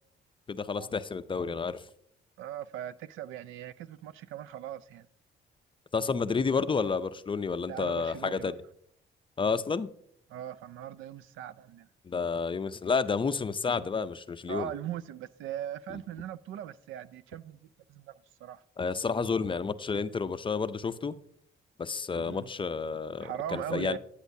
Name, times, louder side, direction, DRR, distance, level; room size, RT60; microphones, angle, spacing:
voice 1, 0.5-1.8 5.9-8.5 9.4-9.9 12.1-14.7 18.8-21.2 21.8-24.0, left 5 dB, 25° left, 0.4 m, -30 dB
voice 2, 2.4-5.1 7.7-8.5 10.3-11.9 14.5-18.1 18.4-18.6 22.2-22.5 23.2-24.0, right 11 dB, 80° right, 0.4 m, -39 dB
10.0 x 8.2 x 2.7 m
cardioid pair, 90°, 20 cm